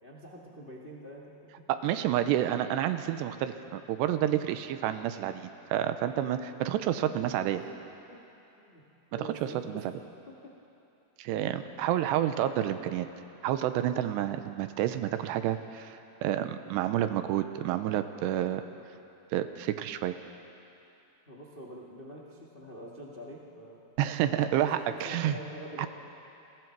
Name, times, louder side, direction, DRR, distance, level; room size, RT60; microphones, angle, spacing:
voice 1, 0.0-1.6 7.0-7.1 7.6-7.7 8.1-8.2 8.5-8.8 9.1-9.9 10.3-10.5 21.3-23.8 24.3-25.9, equal, 55° left, -3 dB, 0.6 m, -45 dB
voice 2, 1.7-7.6 9.4-9.8 11.2-13.1 13.4-18.6 19.3-20.2 24.0-25.4 25.8-25.9, right 11 dB, 85° right, 10 dB, 2.9 m, -29 dB
29.5 x 21.5 x 4.7 m, 2.8 s
omnidirectional pair, 4.9 m